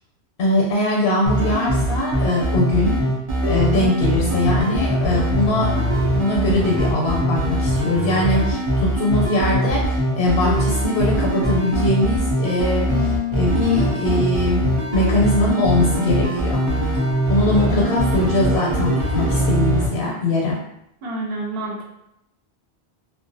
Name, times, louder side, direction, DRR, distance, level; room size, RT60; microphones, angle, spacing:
voice 1, 0.4-3.0 3.4-5.9 6.1-16.6 17.3-20.6, left 2 dB, 80° left, -3 dB, 0.8 m, -21 dB
sound 1, 1.3-19.9, equal, 45° right, 0.4 m, -21 dB
voice 2, 21.0-21.8, right 2 dB, 70° right, -1 dB, 0.8 m, -28 dB
2.3 x 2.1 x 2.5 m, 0.82 s
omnidirectional pair, 1.1 m